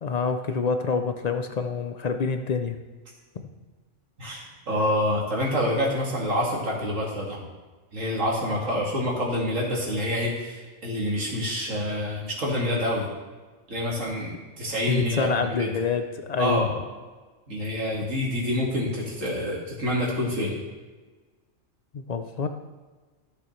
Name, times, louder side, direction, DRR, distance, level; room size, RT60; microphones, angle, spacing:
voice 1, 0.0-2.8 14.9-16.6 21.9-22.5, left 4 dB, 65° left, 7 dB, 0.4 m, -27 dB
voice 2, 4.2-7.4 7.9-13.1 13.7-15.7 16.4-16.7 17.5-20.6, left 1 dB, 75° right, -3 dB, 2.4 m, -27 dB
13.5 x 6.5 x 3.2 m, 1.3 s
omnidirectional pair, 1.4 m